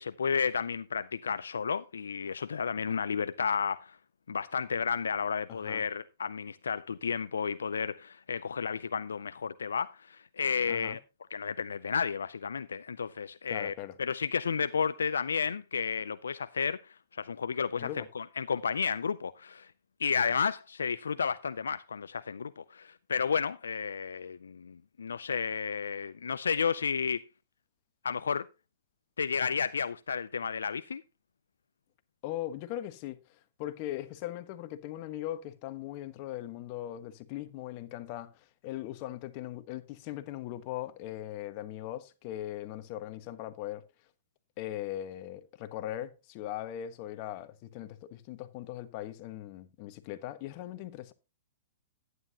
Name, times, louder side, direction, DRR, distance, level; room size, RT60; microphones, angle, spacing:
voice 1, 0.0-4.0 4.3-11.0 11.3-16.8 17.1-17.9 18.1-19.7 20.0-27.2 28.0-28.5 29.2-31.0, left 6 dB, 85° left, 0.4 m, -32 dB
voice 2, 5.5-5.8 10.7-11.0 13.5-14.0 17.8-18.1 32.2-33.2 33.6-43.8 44.6-51.1, left 13 dB, 45° left, 1.2 m, -39 dB
11.0 x 9.5 x 2.8 m
hypercardioid pair, 125°, 0 cm